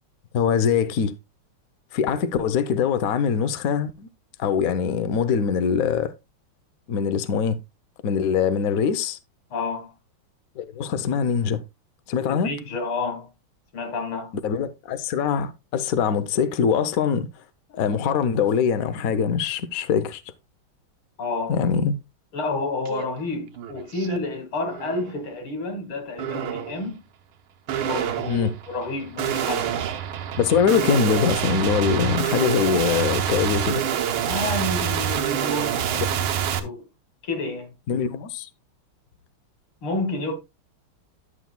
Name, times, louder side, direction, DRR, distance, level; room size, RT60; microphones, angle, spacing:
voice 1, 0.3-1.1 1.9-4.1 4.4-6.1 6.9-7.6 8.0-9.2 10.6-11.6 12.1-12.5 14.4-17.3 17.7-20.2 21.5-21.9 28.3-28.5 30.4-33.8 37.9-38.5, left 7 dB, 60° left, 0.9 m, -23 dB
voice 2, 9.5-9.9 12.3-13.3 13.7-14.3 21.2-21.6 22.3-27.0 27.8-29.7 34.3-36.3 36.6-36.9 37.2-37.7 39.8-40.3, left 2 dB, 80° left, 2.8 m, -30 dB
sound 1, 22.9-23.0 23.4-24.2 24.7-25.1 26.2-26.8 27.7-36.6, right 9 dB, 90° right, 1.7 m, -26 dB
11.5 x 7.4 x 2.2 m
omnidirectional pair, 2.2 m